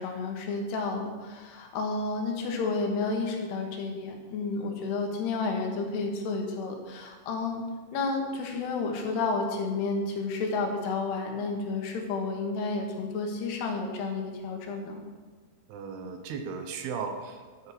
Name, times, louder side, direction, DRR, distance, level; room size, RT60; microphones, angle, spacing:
voice 1, 0.0-7.7 7.9-15.0, left 3 dB, 80° left, 2 dB, 3.4 m, -31 dB
voice 2, 15.7-17.7, right 5 dB, 75° right, 6 dB, 2.9 m, -36 dB
13.0 x 7.9 x 5.0 m, 1.4 s
omnidirectional pair, 4.7 m